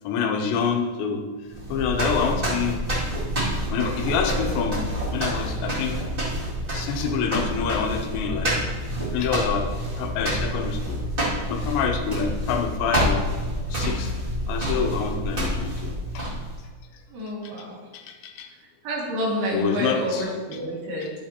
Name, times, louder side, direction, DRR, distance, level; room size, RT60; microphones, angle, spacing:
voice 1, 0.0-1.2 1.7-2.8 3.7-6.0 6.7-8.5 9.1-9.7 10.0-11.0 11.5-13.3 13.7-14.1 14.5-16.2 17.4-17.5 17.9-18.5 19.5-20.3 21.0-21.1, left 6 dB, 85° left, 4 dB, 3.1 m, -27 dB
sound 1, 1.5-16.6, equal, 25° right, 1.2 m, -28 dB
voice 2, 4.3-4.6 17.1-17.8 18.8-21.1, equal, 70° right, -4 dB, 4.0 m, -28 dB
12.0 x 8.1 x 2.9 m, 1.4 s
omnidirectional pair, 5.0 m